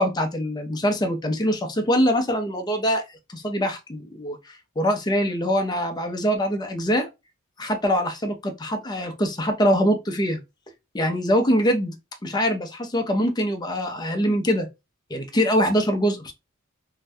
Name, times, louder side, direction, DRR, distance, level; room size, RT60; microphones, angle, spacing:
voice 1, 0.0-3.0 3.3-7.1 7.6-10.4 10.9-12.0 12.2-14.7 15.1-16.3, equal, 20° left, 0.5 m, -23 dB
2.6 x 2.2 x 3.4 m
head